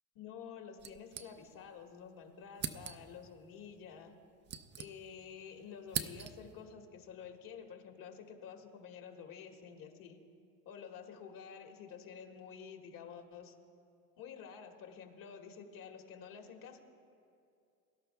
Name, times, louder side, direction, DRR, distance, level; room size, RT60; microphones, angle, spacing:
voice 1, 0.1-4.1 4.8-10.2 10.6-13.5 14.1-16.8, left 7 dB, 55° left, 3 dB, 1.6 m, -50 dB
sound 1, 0.8-1.8 2.1-2.2 2.5-3.2 4.1-5.4 5.6-6.6, right 8 dB, 30° right, 0.4 m, -42 dB
22.5 x 11.5 x 2.2 m, 2.4 s
supercardioid pair, 105°, 41 cm